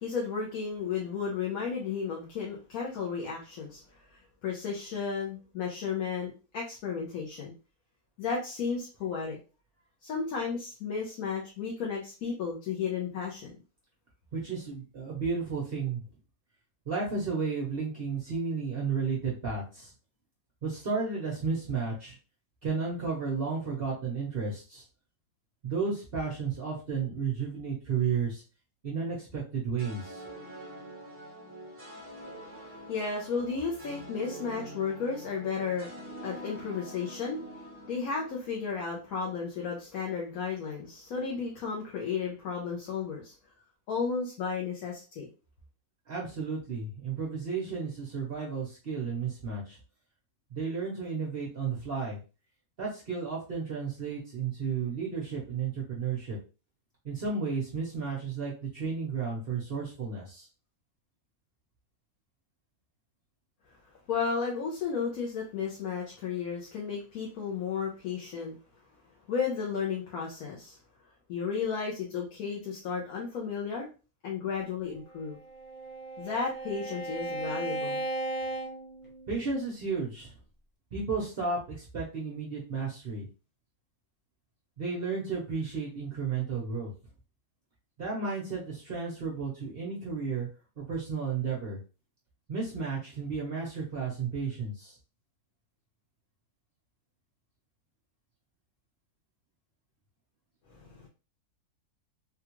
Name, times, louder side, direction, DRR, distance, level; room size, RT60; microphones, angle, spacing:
voice 1, 0.0-7.5 8.2-9.4 10.0-13.5 32.9-35.9 36.2-37.4 37.9-43.3 43.9-45.3 64.1-68.6 69.3-70.8 71.3-73.9 74.2-75.4 76.2-78.1 100.7-101.1, left 5 dB, 70° left, -2 dB, 1.2 m, -33 dB
voice 2, 14.3-16.0 16.9-19.9 20.6-22.2 22.6-24.8 25.6-28.4 28.8-30.2 46.1-49.8 50.5-52.2 52.8-56.4 57.0-60.5 79.3-80.3 80.9-83.3 84.8-86.9 88.0-90.5 90.8-91.8 92.5-95.0, right 5 dB, 45° right, -3 dB, 0.9 m, -33 dB
sound 1, 29.8-39.1, right 1 dB, 10° right, 0.7 m, -45 dB
Bowed string instrument, 75.1-79.6, right 2 dB, 25° left, 0.7 m, -36 dB
3.5 x 2.3 x 2.9 m, 0.33 s
omnidirectional pair, 1.7 m